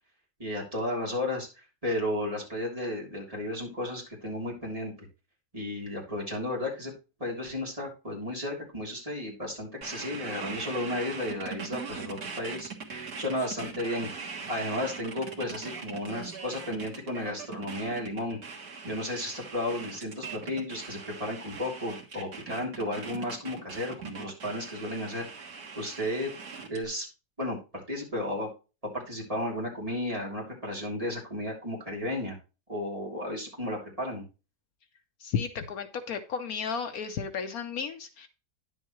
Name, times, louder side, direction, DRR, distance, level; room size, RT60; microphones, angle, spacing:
voice 1, 0.4-4.9 5.5-6.9 7.2-12.7 13.2-14.1 14.5-18.4 18.8-25.3 25.8-26.3 26.7-27.1 27.4-28.5 28.9-32.4 32.7-34.2, left 1 dB, 20° right, -3 dB, 3.5 m, -33 dB
sound 1, 9.8-26.8, right 5 dB, 75° right, 2.1 m, -41 dB
voice 2, 35.2-38.3, left 6 dB, 70° left, 8 dB, 1.2 m, -33 dB
10.5 x 7.2 x 3.1 m, 0.30 s
omnidirectional pair, 1.7 m